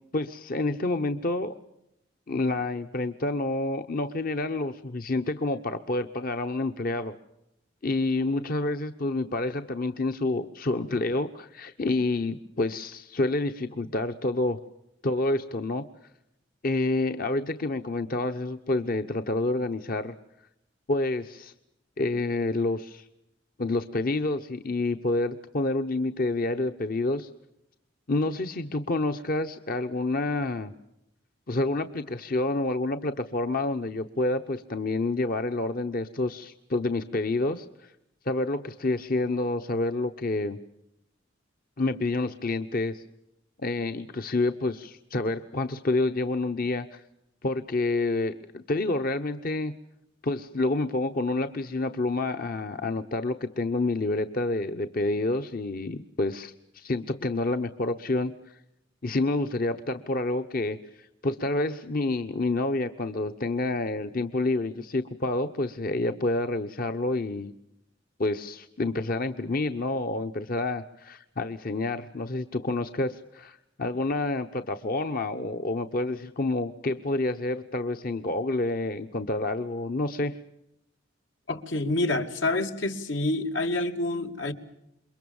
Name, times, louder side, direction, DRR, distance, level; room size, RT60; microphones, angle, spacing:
voice 1, 0.1-1.5 2.3-7.1 7.8-14.6 15.0-15.8 16.6-20.1 20.9-21.5 22.0-23.1 23.6-27.3 28.1-30.7 31.5-37.9 38.2-40.6 41.8-43.0 43.6-47.0 47.4-49.7 50.2-58.6 59.0-67.5 68.2-80.3, left 2 dB, 50° left, 8 dB, 1.0 m, -28 dB
voice 2, 81.5-84.5, left 2 dB, 80° left, 5 dB, 2.5 m, -27 dB
28.5 x 23.0 x 7.2 m, 0.83 s
head